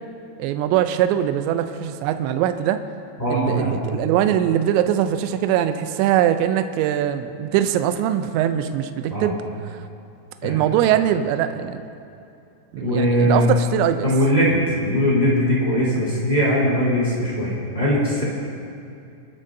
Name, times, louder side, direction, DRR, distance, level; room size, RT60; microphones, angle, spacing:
voice 1, 0.4-2.8 3.3-9.4 9.7-9.8 10.4-11.8 12.7-14.1, right 11 dB, 85° right, 8 dB, 2.6 m, -21 dB
voice 2, 3.2-3.7 9.1-9.3 10.4-10.6 12.8-13.5 14.0-18.2, equal, 10° left, -7 dB, 2.5 m, -20 dB
28.5 x 12.0 x 2.7 m, 2.6 s
omnidirectional pair, 5.8 m